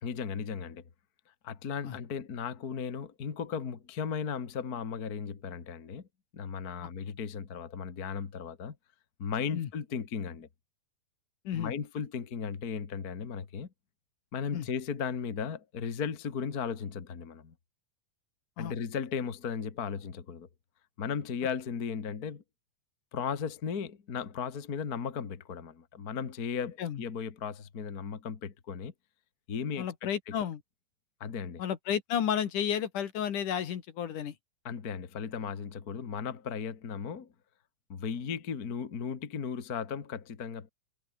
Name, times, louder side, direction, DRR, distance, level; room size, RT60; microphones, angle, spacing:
voice 1, 0.0-0.8 1.4-6.1 6.3-8.8 9.2-10.5 11.5-13.7 14.3-17.5 18.6-20.5 21.0-22.4 23.1-28.9 29.5-30.4 31.2-31.6 34.6-37.3 37.9-40.7, left 6 dB, 35° left, 1.8 m, -36 dB
voice 2, 29.8-30.6 31.6-34.3, left 9 dB, 65° left, 3.2 m, -32 dB
omnidirectional pair, 4.1 m